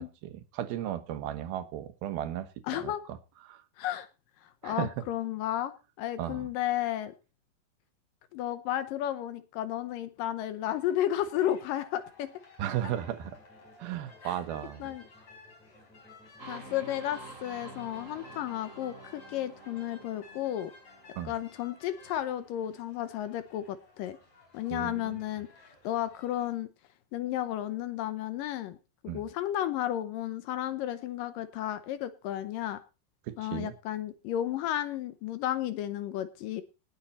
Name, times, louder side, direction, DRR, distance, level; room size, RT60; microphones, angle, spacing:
voice 1, 0.0-2.9 3.5-3.6 4.6-4.9 6.2-6.5 12.6-13.4 13.8-14.9 21.2-21.3 24.7-25.2 29.1-29.2 33.3-33.7, right 11 dB, 70° right, 2.8 m, -35 dB
voice 2, 2.7-3.0 3.8-4.1 4.4-7.1 8.3-12.3 14.2-14.3 14.8-15.0 16.5-20.7 21.3-24.2 24.5-25.5 25.8-26.7 27.1-28.8 29.0-32.8 33.4-36.6, left 12 dB, 75° left, 2.1 m, -33 dB
sound 1, 10.6-26.5, left 3 dB, 40° left, 6.3 m, -56 dB
sound 2, 13.0-18.5, left 1 dB, ahead, 1.7 m, -59 dB
sound 3, 16.4-22.1, right 2 dB, 20° right, 2.6 m, -49 dB
19.0 x 7.0 x 4.2 m
omnidirectional pair, 4.7 m